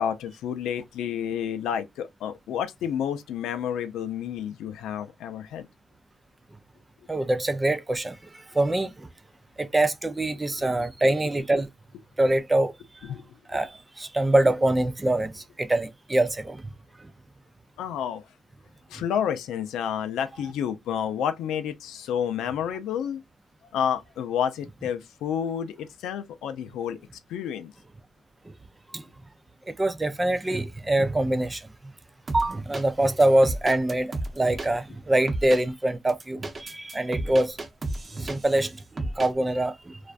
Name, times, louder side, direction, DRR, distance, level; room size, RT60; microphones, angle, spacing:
voice 1, 0.0-5.7 10.3-10.8 13.1-13.6 17.8-18.2 18.9-23.2 23.7-27.0 27.3-27.7, left 8 dB, 85° left, 0.4 m, -30 dB
voice 2, 7.1-8.2 8.5-9.1 9.6-11.7 12.2-12.7 13.5-16.6 28.9-29.0 29.7-31.6 32.3-37.6 38.1-38.7 39.2-40.0, right 1 dB, 20° right, 0.3 m, -24 dB
sound 1, 32.3-32.8 33.2-34.7 35.3-35.6 36.1-38.6 39.0-39.3, right 2 dB, 35° right, 0.7 m, -32 dB
2.4 x 2.2 x 2.3 m
cardioid pair, 90°, 0 cm